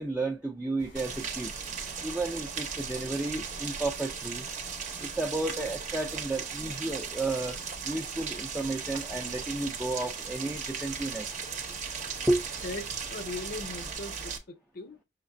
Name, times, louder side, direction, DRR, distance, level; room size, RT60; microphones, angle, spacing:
voice 1, 0.0-1.5 2.0-4.4 5.0-7.6 7.8-11.3 12.3-12.4, right 2 dB, 5° right, 0.5 m, -32 dB
sound 1, 0.8-14.0, left 1 dB, 85° left, 1.1 m, -53 dB
Rain, 1.0-14.4, right 6 dB, 45° right, 0.8 m, -37 dB
voice 2, 12.6-15.0, left 2 dB, 55° left, 0.7 m, -39 dB
6.0 x 3.1 x 2.6 m
head